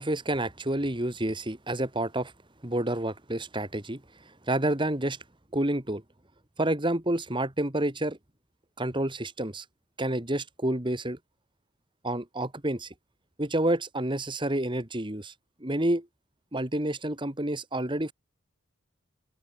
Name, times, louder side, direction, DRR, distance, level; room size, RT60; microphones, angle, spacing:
voice 1, 0.0-2.3 2.6-4.0 4.5-5.2 5.5-6.0 6.6-8.2 8.8-9.6 10.0-11.2 12.0-12.9 13.4-15.3 15.6-16.1 16.5-18.1, right 1 dB, 25° right, 2.2 m, -29 dB
open air
head